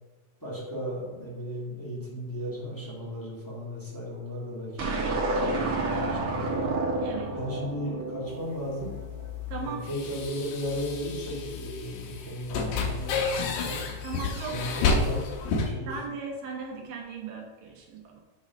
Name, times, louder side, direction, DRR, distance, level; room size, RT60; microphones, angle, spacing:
voice 1, 0.4-6.7 7.3-8.9 9.6-13.8 14.5-15.9, equal, 10° left, -7 dB, 1.3 m, -35 dB
sound 1, 4.8-9.2, right 2 dB, 55° right, 1.7 m, -30 dB
voice 2, 7.0-7.3 9.5-9.9 14.0-14.6 15.9-18.2, right 4 dB, 75° right, 1 dB, 2.9 m, -37 dB
sound 2, 8.3-15.7, left 4 dB, 75° left, 2.5 m, -31 dB
8.5 x 4.0 x 5.2 m, 1.2 s
omnidirectional pair, 4.0 m